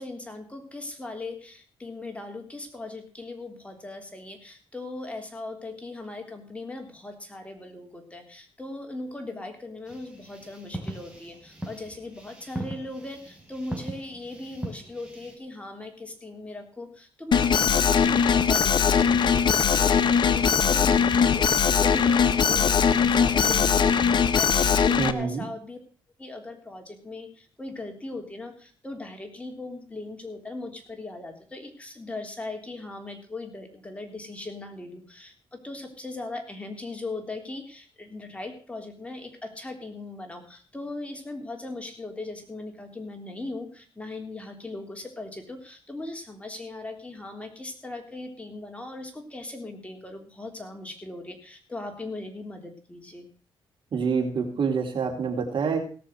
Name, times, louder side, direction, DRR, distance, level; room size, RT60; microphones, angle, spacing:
voice 1, 0.0-25.8 26.2-53.3, left 2 dB, 15° left, 3 dB, 3.4 m, -39 dB
sound 1, 9.8-15.4, right 1 dB, 10° right, 4.3 m, -40 dB
Alarm, 17.3-25.1, left 7 dB, 55° left, 1.0 m, -21 dB
voice 2, 25.0-25.5 53.9-55.8, right 5 dB, 60° right, 2 dB, 3.9 m, -26 dB
17.5 x 6.8 x 6.3 m, 0.41 s
cardioid pair, 85°, 9 cm